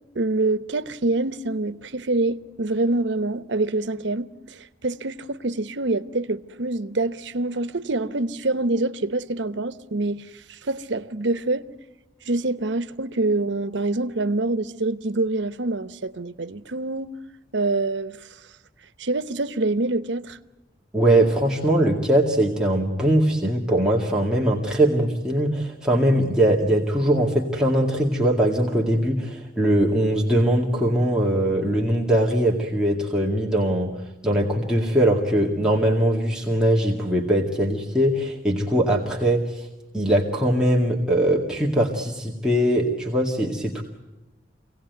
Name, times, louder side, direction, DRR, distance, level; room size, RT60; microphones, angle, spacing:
voice 1, 0.1-11.7 12.2-17.1 17.5-18.2 19.0-20.4, right 2 dB, 90° right, 0.9 m, -26 dB
voice 2, 20.9-33.9 34.2-39.7 39.9-43.8, right 1 dB, 5° right, 2.0 m, -21 dB
26.0 x 18.0 x 9.4 m
head